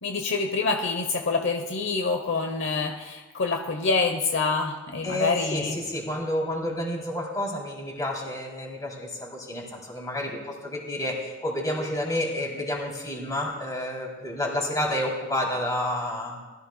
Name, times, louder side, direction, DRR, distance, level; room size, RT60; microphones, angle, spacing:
voice 1, 0.0-5.8, left 4 dB, 60° left, 4 dB, 1.0 m, -26 dB
voice 2, 5.0-16.4, left 1 dB, 20° left, -2 dB, 3.4 m, -30 dB
21.0 x 14.0 x 2.3 m, 1.2 s
head